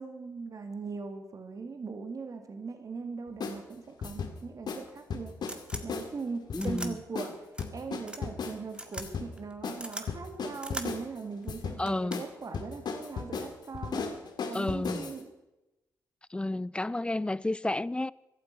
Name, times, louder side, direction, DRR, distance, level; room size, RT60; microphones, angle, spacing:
voice 1, 0.0-5.3 5.8-7.3 7.7-14.1 14.4-15.3, right 4 dB, 50° right, 2.1 m, -40 dB
sound 1, 3.4-3.6 4.0-4.3 4.7-4.8 5.1-6.1 6.5-6.8 7.2-7.3 7.6-8.6 9.0-9.3 9.6-9.8 10.1-11.0 11.5-11.8 12.1-12.3 12.5-15.2, left 5 dB, 65° left, 1.9 m, -35 dB
sound 2, 5.4-5.8 6.6-6.9 7.5-7.7 8.1-8.2 8.7-9.1 9.4-10.1 10.6-10.9 11.4-11.5 11.9-12.4 13.6-13.9, right 1 dB, 10° right, 2.0 m, -40 dB
voice 2, 6.5-7.0 11.8-12.2 14.5-15.1 16.3-18.1, left 2 dB, 15° left, 0.5 m, -31 dB
16.5 x 11.5 x 5.3 m
supercardioid pair, 60°, 8 cm